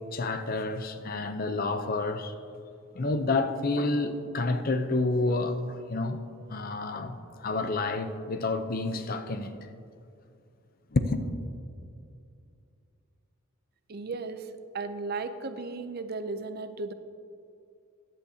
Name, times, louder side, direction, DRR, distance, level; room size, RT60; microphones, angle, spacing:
voice 1, 0.1-2.3 2.9-6.2 6.5-9.5 10.9-11.3, left 2 dB, 45° left, 0.6 m, -29 dB
voice 2, 13.9-14.5 14.7-16.9, right 3 dB, 45° right, 0.5 m, -35 dB
14.5 x 10.5 x 2.8 m
head